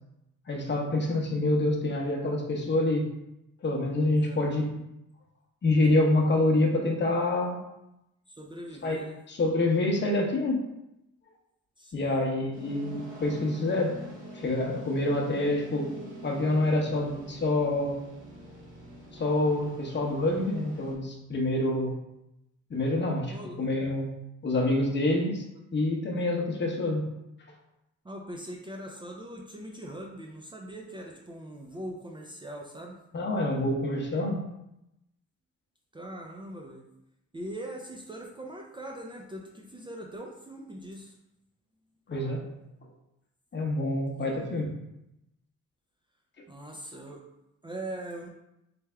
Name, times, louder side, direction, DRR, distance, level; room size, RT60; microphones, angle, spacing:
voice 1, 0.5-3.1 3.6-4.7 5.6-7.6 8.8-10.6 11.9-14.0 14.3-15.9 16.2-18.0 19.1-22.0 22.7-24.1 24.4-25.4 25.7-27.0 33.1-34.4 42.1-42.5 43.5-44.7, left 2 dB, 35° left, 0 dB, 0.9 m, -27 dB
voice 2, 4.1-4.4 8.3-9.2 11.8-12.2 23.3-23.7 26.0-26.2 28.0-33.0 35.9-36.8 37.3-41.2 44.1-44.4 46.5-47.2 47.6-48.3, right 1 dB, 15° right, 0 dB, 0.5 m, -41 dB
sound 1, 12.5-20.9, right 2 dB, 80° right, 1.3 m, -45 dB
3.4 x 3.3 x 3.4 m, 0.87 s
cardioid pair, 90°, 30 cm